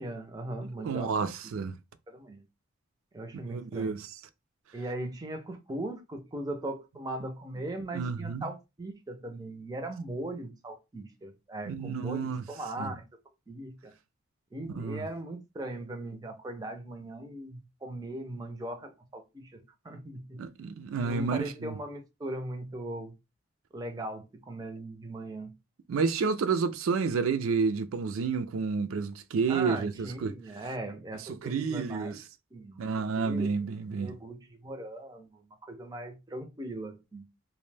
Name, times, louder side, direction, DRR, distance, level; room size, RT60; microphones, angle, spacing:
voice 1, 0.0-1.1 2.1-2.4 3.1-4.0 4.7-13.0 13.5-13.9 14.5-20.4 21.0-23.1 23.7-25.5 29.5-32.2 32.5-32.9 33.2-33.6 33.9-37.3, right 1 dB, 20° right, 0.4 m, -39 dB
voice 2, 0.6-1.8 3.5-4.1 7.9-8.5 11.7-12.4 12.8-12.9 14.7-15.1 20.4-21.8 25.9-30.3 31.2-32.2 32.8-34.1, right 5 dB, 85° right, 0.4 m, -30 dB
2.6 x 2.0 x 3.2 m
head